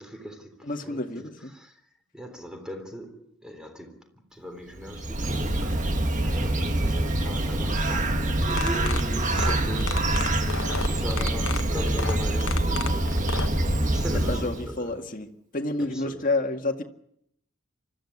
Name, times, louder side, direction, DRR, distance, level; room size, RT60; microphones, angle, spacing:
voice 1, 0.0-1.8 2.1-5.9 6.2-13.3 13.9-15.1 15.8-16.2, equal, 5° right, 3.6 m, -39 dB
voice 2, 0.6-1.5 14.3-16.8, left 2 dB, 40° left, 2.0 m, -29 dB
Bird, 4.8-14.8, right 1 dB, 35° right, 1.5 m, -25 dB
sound 1, 8.5-13.5, left 5 dB, 85° left, 1.3 m, -32 dB
25.0 x 14.5 x 9.7 m
head